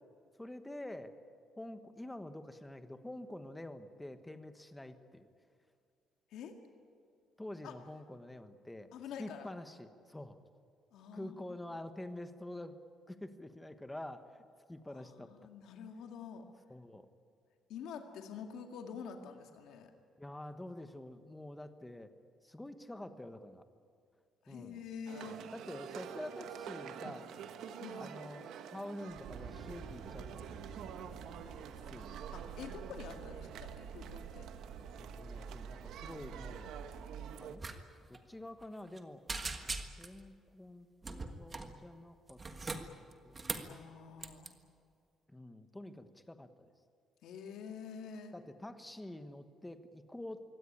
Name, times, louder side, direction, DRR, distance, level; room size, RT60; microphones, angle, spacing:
voice 1, 0.4-1.1 1.6-5.3 7.4-8.9 9.2-10.4 11.1-12.8 13.1-14.4 14.7-15.3 16.7-17.1 20.2-22.1 22.4-23.6 24.5-24.8 25.5-27.3 28.0-30.6 31.9-32.2 34.9-36.7 37.4-37.6 38.1-39.2 40.0-42.4 43.0-43.7 45.3-46.7 48.3-50.4, left 1 dB, 5° left, 9 dB, 1.2 m, -47 dB
voice 2, 8.9-9.5 10.9-11.3 14.9-16.5 17.7-19.9 24.4-25.4 27.8-28.0 32.3-34.5 43.7-44.6 47.2-48.3, left 6 dB, 80° left, 4 dB, 2.0 m, -47 dB
sound 1, 25.1-37.6, right 8 dB, 75° right, 1.5 m, -48 dB
sound 2, 29.1-37.4, right 6 dB, 60° right, 2.5 m, -48 dB
sound 3, 37.6-37.8 38.0-38.2 38.6-39.0 39.3-40.2 41.0-41.7 42.3-43.7 44.2-44.5, right 3 dB, 20° right, 1.5 m, -40 dB
24.0 x 17.0 x 10.0 m, 2.3 s
cardioid pair, 155°, 0 cm